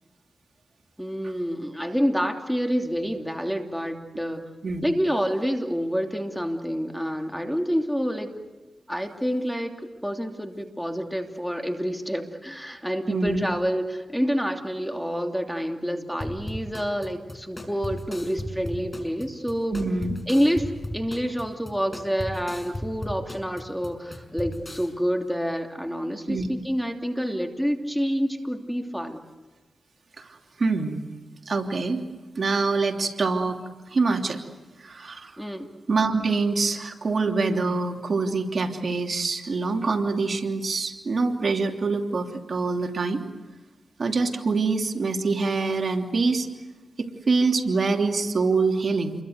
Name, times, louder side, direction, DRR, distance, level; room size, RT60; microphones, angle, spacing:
voice 1, 1.0-4.4 4.8-8.3 8.9-19.8 20.3-29.2 35.4-35.7, equal, ahead, 4 dB, 2.9 m, -28 dB
voice 2, 13.1-13.4 19.7-20.2 26.3-26.5 30.2-31.0 31.5-32.0 32.3-33.6 33.9-34.4 34.8-35.3 35.9-43.2 44.0-46.5 47.0-49.1, right 3 dB, 55° right, 3 dB, 3.0 m, -25 dB
sound 1, 16.2-24.9, equal, 25° left, 5.8 m, -36 dB
29.0 x 23.0 x 8.0 m, 1.2 s
cardioid pair, 75°, 0 cm